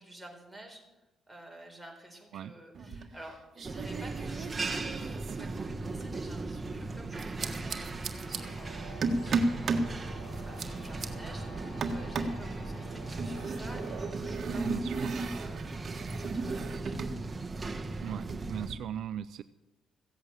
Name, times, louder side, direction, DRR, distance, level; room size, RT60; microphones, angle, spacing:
voice 1, 0.0-17.0, right 1 dB, 5° right, 1 dB, 4.2 m, -51 dB
sound 1, 2.8-3.3 3.6-6.2 7.2-8.4 9.0-9.9 10.3-11.1 11.8-12.4 13.2-17.2 17.4-18.7, right 3 dB, 50° right, 1.6 m, -35 dB
sound 2, 3.6-18.7, right 3 dB, 25° right, 1.5 m, -38 dB
sound 3, 8.3-14.1, equal, 35° left, 5.3 m, -50 dB
voice 2, 14.7-15.1 18.0-19.4, right 10 dB, 75° right, 13 dB, 0.4 m, -38 dB
16.0 x 8.1 x 8.8 m, 1.0 s
cardioid pair, 90°, 0 cm